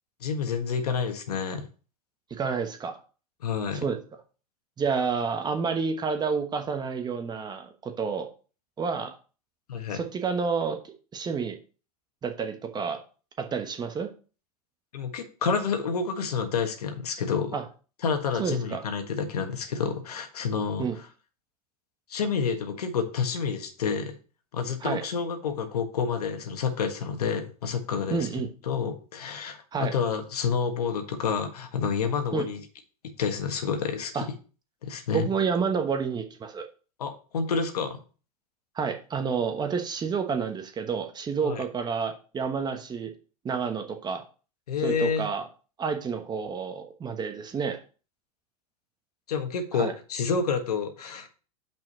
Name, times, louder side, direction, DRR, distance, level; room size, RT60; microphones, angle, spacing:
voice 1, 0.2-1.6 3.4-3.8 9.7-10.0 14.9-17.5 18.0-20.9 22.1-24.2 24.5-28.3 28.7-32.6 33.2-34.1 34.8-35.3 37.0-38.0 41.4-41.6 44.7-45.3 49.3-51.3, left 6 dB, 80° left, 7 dB, 1.5 m, -29 dB
voice 2, 2.3-3.0 3.7-4.0 4.8-8.3 8.8-9.1 9.9-11.6 12.2-13.0 13.4-14.1 17.5-17.6 18.4-18.8 20.8-21.0 24.8-25.0 28.1-28.5 29.7-29.9 32.3-32.5 34.1-34.3 35.1-36.7 38.7-43.1 43.4-44.2 44.8-45.5 45.8-47.8 49.7-49.9, right 5 dB, 20° right, 6 dB, 1.2 m, -29 dB
5.6 x 5.3 x 5.4 m, 0.37 s
hypercardioid pair, 105°, 20 cm